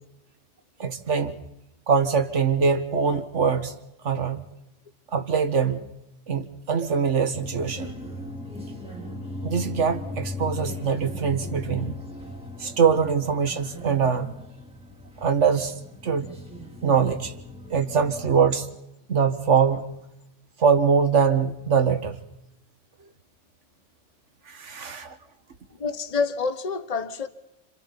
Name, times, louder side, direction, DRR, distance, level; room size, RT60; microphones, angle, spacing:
voice 1, 0.8-1.3 1.9-3.7 4.0-4.4 5.1-5.9 6.3-7.9 9.4-11.9 12.6-14.3 15.2-15.7 16.0-16.3 16.8-17.3 17.7-18.7 19.1-19.8 20.6-22.2 24.5-25.2, right 6 dB, 75° right, 1.8 m, -23 dB
sound 1, 7.3-18.4, left 2 dB, 5° right, 2.8 m, -38 dB
voice 2, 25.8-27.3, left 5 dB, 35° left, 1.2 m, -28 dB
29.5 x 28.5 x 4.1 m
omnidirectional pair, 1.2 m